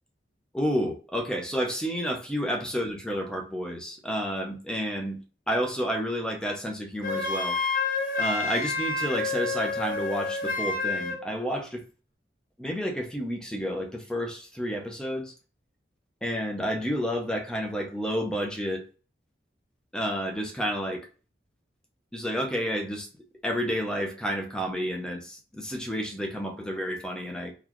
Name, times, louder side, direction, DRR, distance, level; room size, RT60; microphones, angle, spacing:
voice 1, 0.5-5.2 5.5-7.6 8.2-11.8 12.6-15.3 16.2-18.8 19.9-21.1 22.1-23.1 23.4-27.5, equal, 5° left, 0.6 m, -30 dB
Wind instrument woodwind instrument, 7.0-11.2, left 3 dB, 50° left, 0.9 m, -29 dB
3.9 x 2.3 x 3.0 m
head